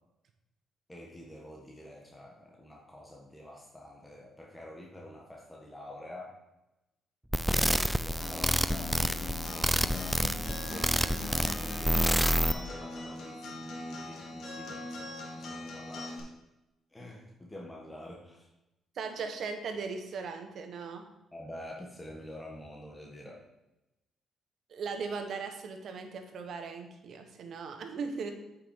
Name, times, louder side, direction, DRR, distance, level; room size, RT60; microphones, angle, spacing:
voice 1, 0.9-6.3 7.5-12.0 12.5-16.2 16.9-18.5 21.3-23.4, left 1 dB, 10° left, -2 dB, 1.5 m, -47 dB
sound 1, 7.3-12.5, equal, 5° right, 0.4 m, -28 dB
Acoustic guitar, 8.2-16.2, left 2 dB, 70° left, 2.2 m, -41 dB
voice 2, 18.9-21.0 24.7-28.3, right 5 dB, 60° right, 5 dB, 1.2 m, -38 dB
8.2 x 6.0 x 4.5 m, 0.96 s
cardioid pair, 90°, 0 cm